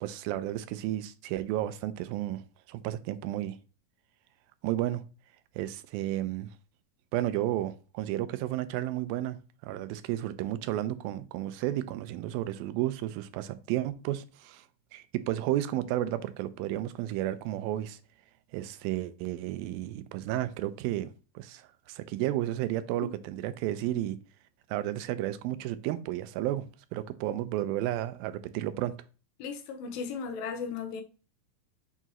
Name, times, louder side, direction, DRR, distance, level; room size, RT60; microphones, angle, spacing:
voice 1, 0.0-2.4 2.7-3.6 4.6-5.0 5.6-6.5 7.1-9.4 9.6-14.6 14.9-18.0 18.5-24.2 24.7-26.6 26.9-28.9, right 14 dB, 90° right, 2.4 m, -32 dB
voice 2, 29.4-31.0, left 5 dB, 80° left, 2.6 m, -36 dB
6.8 x 4.7 x 2.9 m
omnidirectional pair, 4.1 m